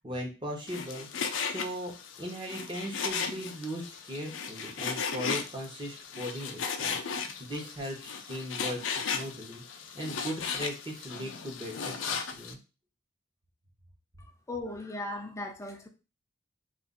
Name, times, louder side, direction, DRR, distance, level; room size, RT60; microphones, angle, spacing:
voice 1, 0.0-12.6, equal, 25° right, 0 dB, 0.8 m, -39 dB
Frying (food), 0.7-12.5, left 6 dB, 75° left, 0.4 m, -36 dB
voice 2, 14.5-15.9, left 2 dB, 15° left, 4 dB, 0.4 m, -37 dB
2.4 x 2.4 x 3.7 m, 0.31 s
head